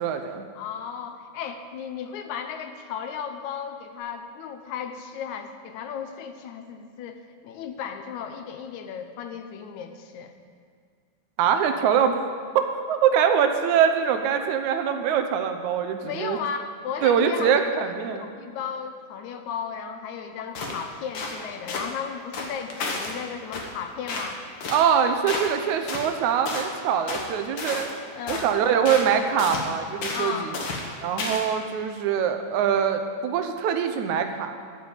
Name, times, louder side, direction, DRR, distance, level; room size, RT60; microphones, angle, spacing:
voice 1, 0.0-0.5 11.4-12.2 12.5-16.4 17.0-18.3 24.7-27.9 28.3-30.6 31.0-34.6, right 7 dB, 75° right, 7 dB, 2.1 m, -23 dB
voice 2, 0.6-10.3 16.0-24.4 28.2-28.5 30.1-30.5, left 7 dB, 75° left, 7 dB, 2.1 m, -35 dB
sound 1, 20.5-20.8 21.1-21.4 21.7-21.9 22.3-23.1 23.5-23.7 24.1-24.3 24.6-24.9 25.3-25.6 25.9-26.1 26.4-26.7 27.1-27.3 27.6-28.0 28.3-28.5 28.8-29.1 29.4-29.7 30.0-30.3 30.5-30.9 31.2-31.5, left 3 dB, 55° left, 1.4 m, -31 dB
13.0 x 5.0 x 8.8 m, 2.1 s
omnidirectional pair, 3.5 m